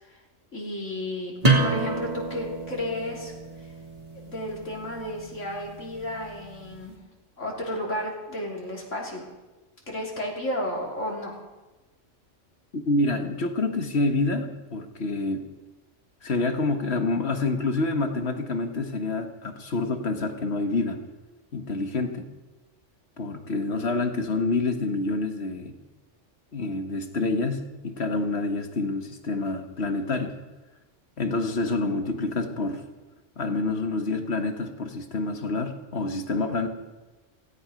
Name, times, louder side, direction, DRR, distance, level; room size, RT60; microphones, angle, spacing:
voice 1, 0.5-1.3 1.6-3.3 4.2-7.0 7.4-9.2 9.9-11.4, left 1 dB, 70° left, -2 dB, 3.6 m, -32 dB
sound 1, 1.4-6.8, right 2 dB, 30° right, 2.7 m, -29 dB
voice 2, 12.7-15.4 16.2-21.0 21.5-22.3 23.2-25.7 26.5-30.3 31.2-32.8 33.4-36.7, left 3 dB, 55° left, 6 dB, 1.7 m, -27 dB
17.0 x 16.0 x 5.1 m, 1.1 s
omnidirectional pair, 1.3 m